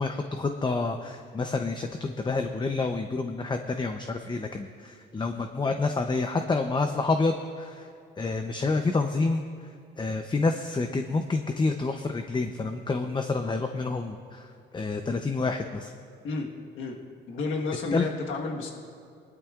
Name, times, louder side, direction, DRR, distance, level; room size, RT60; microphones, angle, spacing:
voice 1, 0.0-7.9 8.2-9.4 10.0-15.9 17.9-18.1, left 3 dB, 25° left, 6 dB, 0.7 m, -28 dB
voice 2, 17.3-18.7, left 3 dB, 80° left, 0 dB, 1.4 m, -31 dB
20.5 x 12.0 x 2.4 m, 2.4 s
cardioid pair, 90°, 20 cm